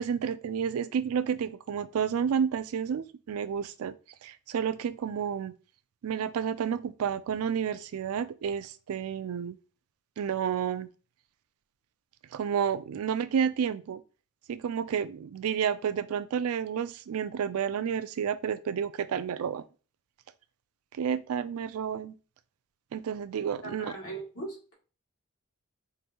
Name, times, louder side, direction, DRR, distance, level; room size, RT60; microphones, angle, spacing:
voice 1, 0.0-3.9 4.2-5.5 6.0-9.5 10.2-10.9 12.3-14.0 14.5-19.6 21.0-22.1 22.9-24.0, right 7 dB, 80° right, 0.4 m, -30 dB
voice 2, 23.6-24.7, right 2 dB, 80° left, 2.0 m, -39 dB
4.8 x 2.6 x 2.9 m
head